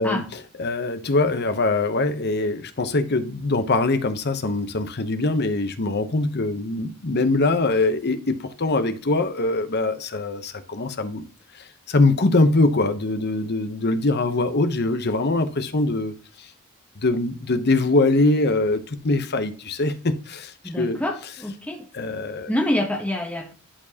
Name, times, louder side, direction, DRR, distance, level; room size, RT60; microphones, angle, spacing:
voice 1, 0.0-11.2 11.5-16.5 17.0-21.0 21.9-22.5, left 2 dB, 50° left, 0.9 m, -23 dB
voice 2, 20.6-21.9 22.5-23.5, left 1 dB, 5° left, 1.1 m, -26 dB
11.5 x 4.4 x 2.9 m
head